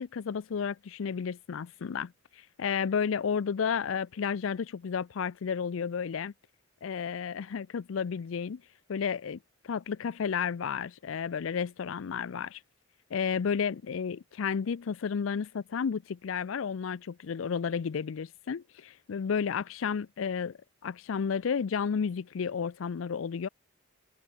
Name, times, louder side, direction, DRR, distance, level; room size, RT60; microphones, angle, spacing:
voice 1, 0.0-6.3 6.8-8.6 8.9-12.6 13.1-23.5, left 6 dB, 75° left, 0.4 m, -32 dB
head